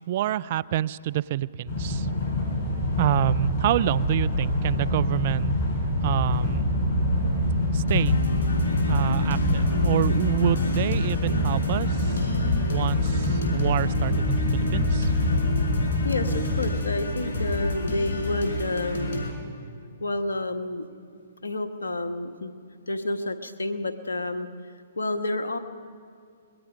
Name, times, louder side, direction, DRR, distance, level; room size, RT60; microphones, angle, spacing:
voice 1, 0.1-2.1 3.0-5.6 6.0-6.7 7.7-8.2 8.9-12.2 12.7-15.1, right 13 dB, 50° right, 20 dB, 0.5 m, -27 dB
sound 1, 1.7-16.6, left 1 dB, 45° left, 6.0 m, -25 dB
sound 2, 7.9-19.3, left 1 dB, 65° left, 5.5 m, -29 dB
voice 2, 16.0-19.3 20.0-20.9 21.4-22.5 22.9-24.5 25.0-25.6, left 2 dB, 85° left, 8 dB, 1.6 m, -29 dB
26.0 x 21.5 x 5.3 m, 2.3 s
hypercardioid pair, 125°, 0 cm